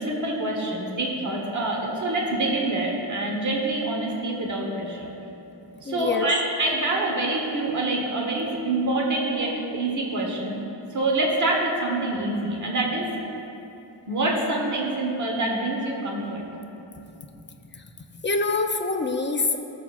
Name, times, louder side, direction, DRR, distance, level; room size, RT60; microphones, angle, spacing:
voice 1, 0.0-5.1 5.8-10.6 10.9-13.1 14.1-16.4, right 2 dB, 40° right, -1 dB, 1.2 m, -26 dB
voice 2, 5.8-6.3 17.7-17.8 18.2-19.6, left 3 dB, 25° left, 4 dB, 0.5 m, -25 dB
17.0 x 6.9 x 2.5 m, 2.9 s
wide cardioid pair, 140°, 46 cm